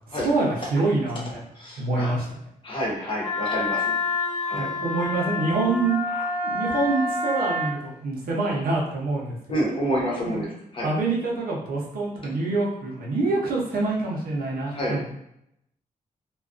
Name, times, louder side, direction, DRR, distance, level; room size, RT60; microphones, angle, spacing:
voice 1, 0.1-1.4 1.8-2.4 4.5-6.0 6.4-9.4 10.2-10.4 10.8-15.0, right 3 dB, 90° right, -3 dB, 0.7 m, -26 dB
voice 2, 1.5-2.1 2.6-3.9 4.5-4.7 6.1-6.2 9.5-10.9 14.7-15.0, equal, 35° left, -4 dB, 0.8 m, -28 dB
Wind instrument woodwind instrument, 3.2-7.8, left 2 dB, 10° right, 0.8 m, -28 dB
2.3 x 2.2 x 2.4 m, 0.77 s
wide cardioid pair, 135°, 15 cm